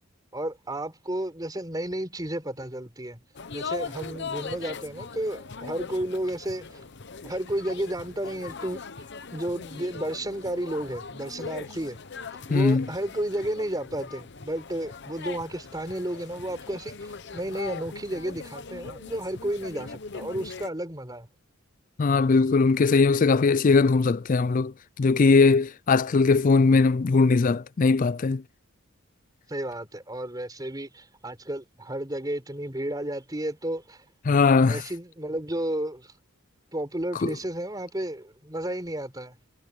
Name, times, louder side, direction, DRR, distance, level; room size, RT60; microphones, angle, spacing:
voice 1, 0.3-3.2 3.5-6.8 7.2-8.9 9.3-12.0 12.3-21.3 29.5-34.4 34.7-36.1 36.7-39.4, right 1 dB, 20° right, 4.1 m, -32 dB
sound 1, 3.4-20.7, left 5 dB, 55° left, 0.9 m, -40 dB
voice 2, 12.5-12.9 22.0-28.4 34.3-34.8 37.2-37.3, left 4 dB, 40° left, 0.4 m, -20 dB
head